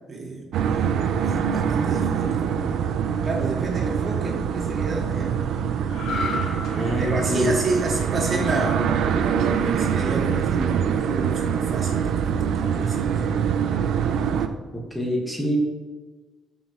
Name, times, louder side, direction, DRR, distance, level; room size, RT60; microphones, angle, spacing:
voice 1, 0.1-2.6 3.2-5.4 7.0-13.3, right 3 dB, 45° right, -3 dB, 2.3 m, -30 dB
sound 1, 0.5-14.5, right 7 dB, 75° right, 0.5 m, -24 dB
sound 2, 5.9-9.4 9.8-10.0, left 3 dB, 90° left, 2.2 m, -34 dB
voice 2, 6.7-7.5 14.7-15.6, left 1 dB, 5° left, -1 dB, 1.5 m, -25 dB
13.5 x 5.5 x 3.0 m, 1.3 s
cardioid pair, 90°, 0 cm